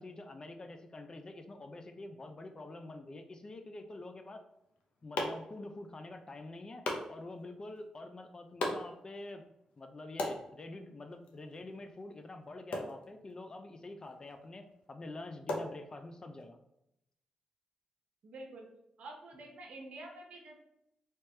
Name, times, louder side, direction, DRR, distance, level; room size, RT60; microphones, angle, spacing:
voice 1, 0.0-4.4 5.0-9.4 9.8-16.6, left 2 dB, 35° left, 7 dB, 0.5 m, -46 dB
Hatchet chopping wood, 4.5-16.4, left 2 dB, 80° left, 0.7 m, -43 dB
voice 2, 18.2-18.7 19.0-20.6, right 2 dB, 75° right, 1 dB, 0.8 m, -48 dB
3.3 x 2.9 x 3.2 m, 0.80 s
cardioid pair, 70°, 2 cm